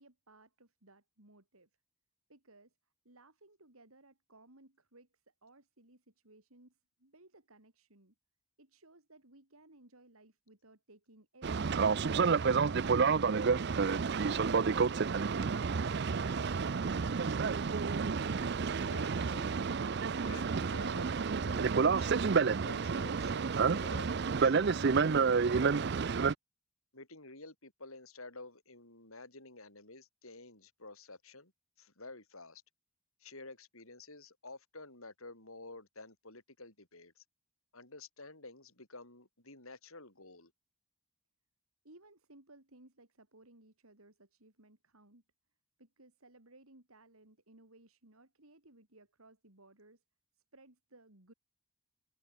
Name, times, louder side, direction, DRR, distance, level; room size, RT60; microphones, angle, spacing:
voice 1, 0.0-1.7 2.3-2.7 3.0-8.1 8.6-13.1 41.8-45.2 45.8-50.0 50.4-51.3, right 2 dB, 75° right, 3.9 m, -61 dB
Boat Water vehicle, 11.4-26.3, right 5 dB, 50° right, 0.5 m, -30 dB
voice 2, 18.1-19.5 20.2-21.2 21.4-25.9 26.9-31.5 31.8-32.6 33.2-37.2 37.7-40.5, left 3 dB, 70° left, 7.4 m, -51 dB
head